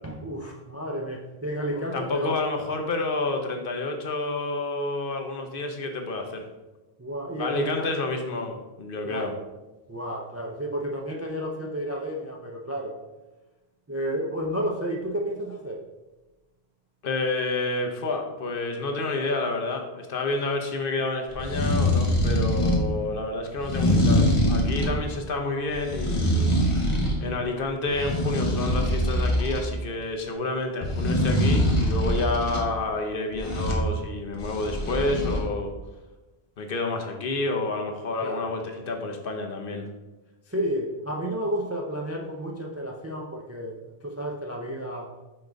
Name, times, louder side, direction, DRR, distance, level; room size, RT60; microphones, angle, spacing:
voice 1, 0.0-2.4 7.0-7.9 9.0-9.4 9.9-13.0 13.9-15.8 38.2-38.5 40.5-45.1, equal, 20° right, 1 dB, 0.4 m, -31 dB
voice 2, 1.7-6.5 7.4-9.3 17.0-26.5 27.2-35.7 36.6-39.9, left 2 dB, 60° left, 4 dB, 0.9 m, -29 dB
sound 1, 21.3-22.9 23.6-25.0 25.7-27.2 27.6-29.7 30.8-32.6 33.3-33.9 34.3-35.4, equal, 30° left, 1.1 m, -24 dB
5.9 x 3.8 x 5.0 m, 1.1 s
omnidirectional pair, 1.1 m